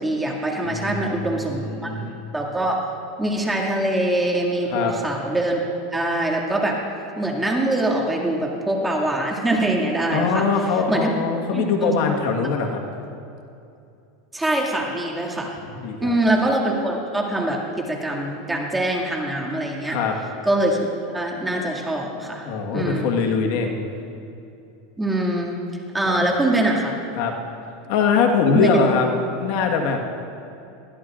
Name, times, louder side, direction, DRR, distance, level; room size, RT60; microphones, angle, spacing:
voice 1, 0.0-2.1 2.3-2.8 3.2-5.6 5.9-6.8 7.2-10.5 10.9-11.1 11.5-11.9 14.3-15.5 16.0-20.0 20.4-20.9 21.1-22.4 22.7-23.1 25.0-25.6 25.9-26.9 28.5-28.8, right 1 dB, 10° right, -2 dB, 2.2 m, -23 dB
voice 2, 0.6-2.2 4.7-4.9 10.1-12.8 15.7-16.2 19.9-20.1 22.4-23.8 26.0-26.2 27.2-27.3 27.9-29.1 29.4-30.0, left 5 dB, 60° left, 3 dB, 1.4 m, -22 dB
21.5 x 14.0 x 2.5 m, 2.6 s
supercardioid pair, 120°, 0 cm